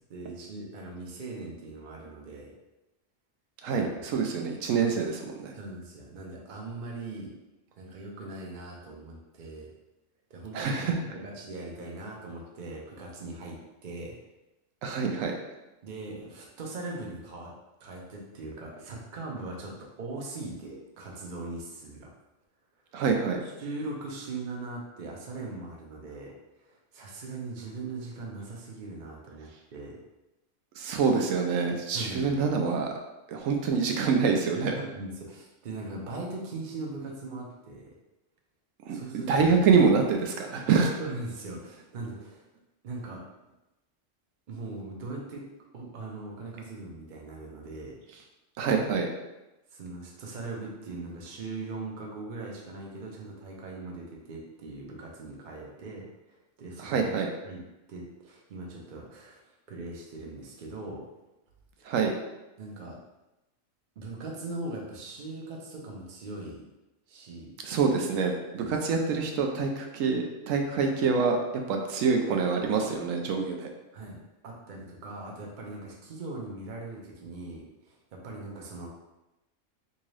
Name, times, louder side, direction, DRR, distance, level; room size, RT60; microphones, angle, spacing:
voice 1, 0.1-2.5 3.7-4.1 4.8-5.0 5.5-7.3 7.8-9.7 10.3-10.8 11.1-14.2 15.8-17.5 17.8-19.7 20.0-22.1 23.4-30.0 31.9-32.4 34.5-37.9 38.9-39.5 41.0-42.5 42.8-43.2 44.5-45.4 45.7-48.0 49.7-57.2 57.4-57.6 57.9-61.0 61.8-61.9 62.6-63.0 64.0-66.7 67.1-67.5 68.6-68.7 73.9-78.9, right 2 dB, 45° right, -1 dB, 0.7 m, -40 dB
voice 2, 3.6-5.6 10.5-11.0 14.8-15.4 22.9-23.4 30.8-32.9 33.3-34.7 38.9-40.9 48.6-49.1 56.8-57.3 61.9-62.1 67.6-73.7, right 5 dB, 90° right, 3 dB, 1.0 m, -26 dB
3.6 x 2.7 x 3.1 m, 0.99 s
omnidirectional pair, 1.3 m